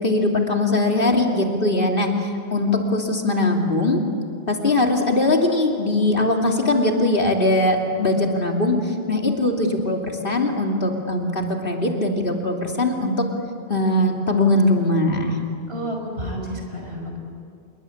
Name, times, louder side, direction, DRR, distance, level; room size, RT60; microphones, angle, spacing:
voice 1, 0.0-4.0 4.5-13.1 13.7-15.4, left 2 dB, 60° left, 1 dB, 3.0 m, -21 dB
voice 2, 15.7-17.2, equal, 80° right, 2 dB, 5.2 m, -30 dB
27.0 x 22.0 x 8.6 m, 2.3 s
omnidirectional pair, 1.0 m